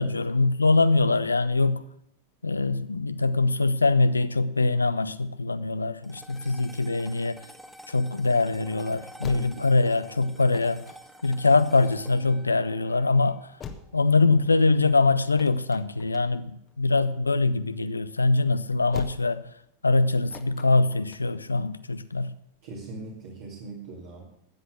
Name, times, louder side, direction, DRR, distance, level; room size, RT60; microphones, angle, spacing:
voice 1, 0.0-1.8 2.4-7.4 7.9-10.8 11.2-13.5 13.9-19.4 19.8-22.3, left 3 dB, 80° left, 0.5 m, -23 dB
sound 1, 6.0-14.5, equal, ahead, 1.0 m, -50 dB
sound 2, 7.5-22.4, left 6 dB, 25° left, 1.3 m, -47 dB
voice 2, 9.3-9.7 22.6-24.2, right 2 dB, 50° right, 2.7 m, -40 dB
13.0 x 8.2 x 6.3 m
figure-of-eight pair, 90°, 0 cm